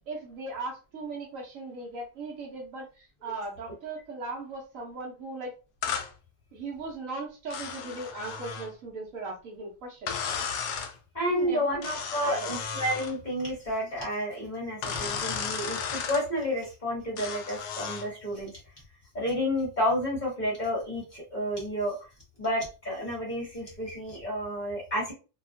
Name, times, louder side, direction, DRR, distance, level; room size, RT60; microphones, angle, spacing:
voice 1, 0.1-5.5 6.5-10.2 11.2-11.9 12.2-12.6, right 3 dB, 65° right, 0 dB, 1.0 m, -38 dB
sound 1, 5.8-6.1 7.5-8.7 10.1-10.9 11.8-13.2 14.8-16.2 17.2-18.1, left 6 dB, 70° left, 0.7 m, -34 dB
voice 2, 11.1-18.5 19.1-21.9 22.4-25.1, equal, 35° left, -4 dB, 1.0 m, -30 dB
2.7 x 2.3 x 2.5 m, 0.33 s
omnidirectional pair, 1.7 m